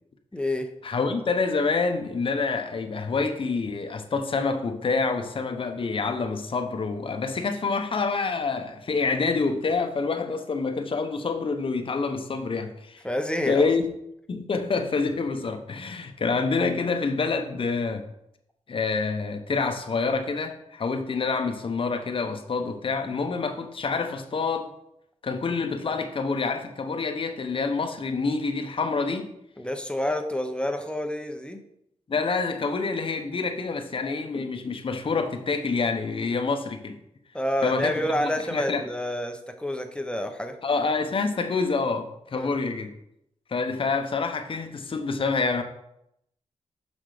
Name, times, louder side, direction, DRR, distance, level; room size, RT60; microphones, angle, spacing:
voice 1, 0.3-0.7 13.0-13.7 29.6-31.6 37.3-40.6 42.3-42.6, left 1 dB, 10° left, 0.9 m, -28 dB
voice 2, 0.8-13.0 13.5-13.8 14.3-18.0 18.7-24.7 25.2-29.3 32.1-37.0 37.6-38.8 40.6-42.9 43.5-45.6, left 4 dB, 45° left, 0.9 m, -27 dB
6.1 x 5.8 x 5.0 m
cardioid pair, 80°, 12 cm